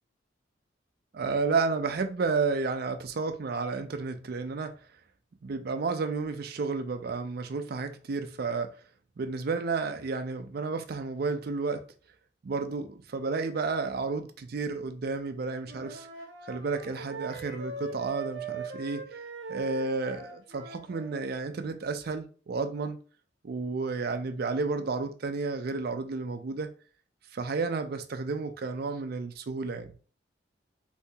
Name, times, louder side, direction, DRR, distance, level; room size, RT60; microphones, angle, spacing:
voice 1, 1.1-4.8 5.4-8.8 9.2-11.9 12.4-16.1 16.5-19.2 19.5-23.0 23.4-26.8 27.3-30.0, right 4 dB, 55° right, 0.4 m, -31 dB
Wind instrument woodwind instrument, 15.6-21.3, right 4 dB, 80° right, 0.9 m, -41 dB
3.4 x 2.7 x 2.7 m
head